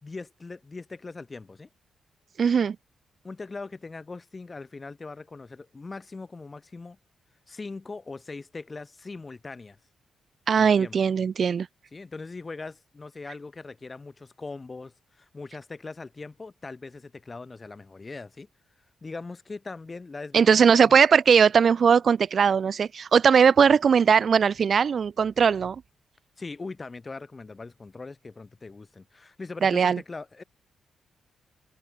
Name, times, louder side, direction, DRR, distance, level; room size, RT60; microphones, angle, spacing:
voice 1, 0.0-1.7 3.2-7.0 7.5-9.8 10.5-11.0 11.9-18.5 19.0-21.0 26.4-30.4, left 3 dB, 30° left, 5.5 m, -40 dB
voice 2, 2.4-2.8 10.5-11.7 20.3-25.8 29.6-30.0, right 6 dB, 55° right, 0.7 m, -19 dB
cardioid pair, 95°, 0 cm